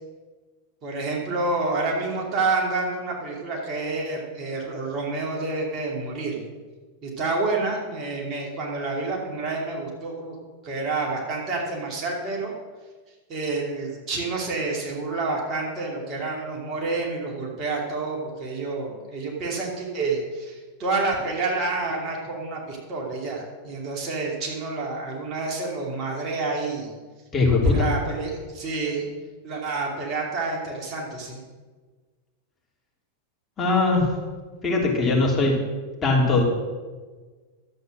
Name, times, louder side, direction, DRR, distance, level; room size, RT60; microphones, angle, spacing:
voice 1, 0.8-6.4 7.0-10.4 10.6-12.5 13.3-26.9 27.6-29.1 29.4-31.4, right 3 dB, 35° right, -1 dB, 2.6 m, -28 dB
voice 2, 27.3-27.9 33.6-34.0 34.6-35.5 36.0-36.4, left 3 dB, 20° left, -2 dB, 3.2 m, -20 dB
11.5 x 8.2 x 6.3 m, 1.4 s
figure-of-eight pair, 90°, 0 cm